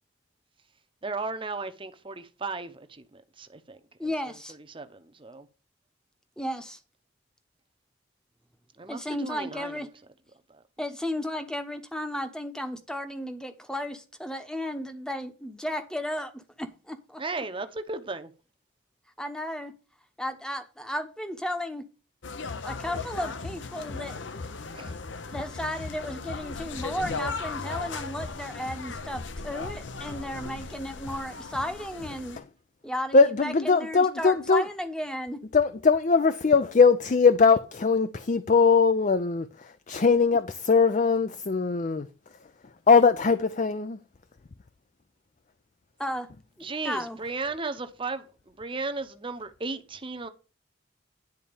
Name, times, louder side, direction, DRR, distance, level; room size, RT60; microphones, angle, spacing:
voice 1, 1.0-3.8 4.7-5.5 8.8-9.8 17.2-18.3 24.7-24.9 46.6-48.3 48.6-50.3, right 3 dB, 25° right, 0.9 m, -35 dB
voice 2, 4.0-4.6 6.4-6.8 8.9-9.9 10.8-17.2 19.2-19.7 20.2-21.8 22.6-24.2 25.2-32.4 32.8-35.4 46.0-46.3 46.6-47.2, left 1 dB, 5° left, 1.0 m, -34 dB
sound 1, 22.2-32.4, left 4 dB, 70° left, 0.8 m, -37 dB
voice 3, 33.1-34.6 35.5-42.1 42.9-44.0, left 4 dB, 40° left, 0.5 m, -21 dB
10.5 x 4.2 x 6.9 m
head